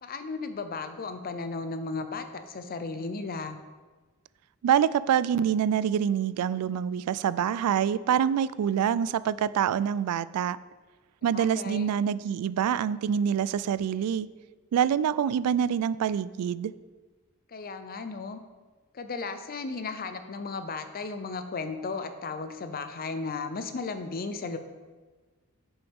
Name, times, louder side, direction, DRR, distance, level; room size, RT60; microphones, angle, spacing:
voice 1, 0.0-3.6 11.3-11.9 17.5-18.4 18.9-24.6, left 4 dB, 40° left, 9 dB, 0.5 m, -35 dB
voice 2, 4.6-10.6 11.2-14.3 14.7-16.7, right 8 dB, 85° right, 17 dB, 0.3 m, -26 dB
8.9 x 7.0 x 3.5 m, 1.3 s
head